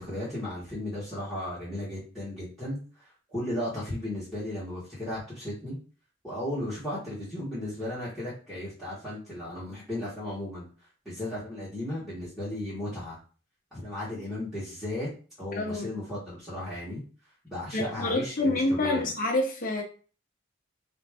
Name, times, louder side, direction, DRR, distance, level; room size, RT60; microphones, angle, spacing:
voice 1, 0.0-2.8 3.3-5.8 6.2-10.7 11.0-13.2 13.7-15.1 15.4-17.0 17.4-19.1, left 1 dB, ahead, 1.3 m, -35 dB
voice 2, 15.5-15.9 17.7-19.8, left 2 dB, 45° left, 0.9 m, -27 dB
3.8 x 2.5 x 3.4 m
head